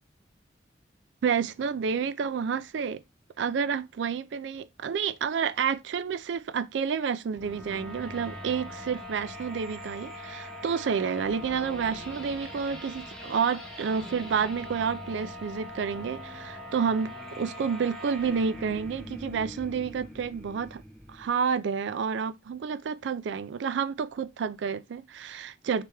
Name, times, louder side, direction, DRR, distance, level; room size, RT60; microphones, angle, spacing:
voice 1, 1.2-3.0 3.4-20.8 21.1-25.9, right 6 dB, 85° right, 0.4 m, -30 dB
sound 1, 7.3-21.3, equal, ahead, 0.7 m, -42 dB
3.4 x 3.4 x 4.5 m
head